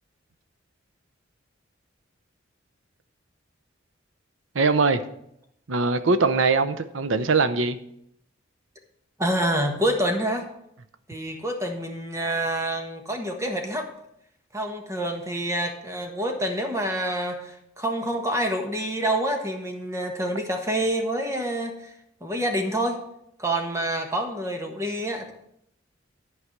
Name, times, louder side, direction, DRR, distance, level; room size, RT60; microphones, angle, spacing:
voice 1, 4.5-5.0 5.7-7.8, right 4 dB, 75° right, 10 dB, 0.7 m, -21 dB
voice 2, 9.2-10.5 11.1-13.9 14.5-21.9 22.2-23.0 23.4-25.3, right 1 dB, 15° right, 3 dB, 1.3 m, -27 dB
11.0 x 4.8 x 7.2 m, 0.76 s
head